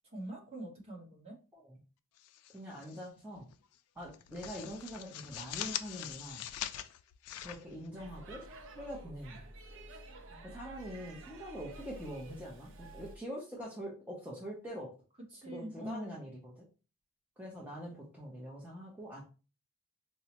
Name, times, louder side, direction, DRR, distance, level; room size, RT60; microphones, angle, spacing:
voice 1, 0.1-1.4 10.3-10.4 15.3-16.2, right 1 dB, 30° right, -1 dB, 1.0 m, -44 dB
sound 1, 2.2-3.1 3.4-3.6 4.0-8.4, left 11 dB, 85° left, 0.3 m, -43 dB
voice 2, 2.5-3.5 3.9-6.4 7.4-8.4 8.7-9.5 10.4-14.9 15.5-16.6 17.4-19.2, equal, 5° right, -4 dB, 0.6 m, -44 dB
Speech / Shout / Subway metro underground, 8.0-13.2, right 2 dB, 60° right, 0.5 m, -50 dB
4.5 x 2.0 x 2.8 m, 0.34 s
head